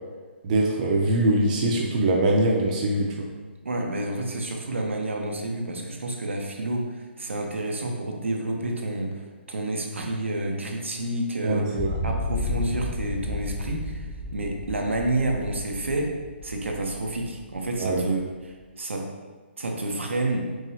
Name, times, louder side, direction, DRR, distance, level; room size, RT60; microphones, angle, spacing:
voice 1, 0.4-3.3 11.4-12.0 17.8-18.1, right 1 dB, 40° right, -1 dB, 0.6 m, -23 dB
voice 2, 3.6-9.2 9.5-11.8 12.0-14.1 14.3-16.1 16.4-18.3 18.8-19.1 19.6-20.5, right 2 dB, 85° right, 1 dB, 0.7 m, -29 dB
sound 1, 11.8-17.8, left 2 dB, 20° left, 0.9 m, -33 dB
4.7 x 2.6 x 2.8 m, 1.4 s
hypercardioid pair, 140°, 6 cm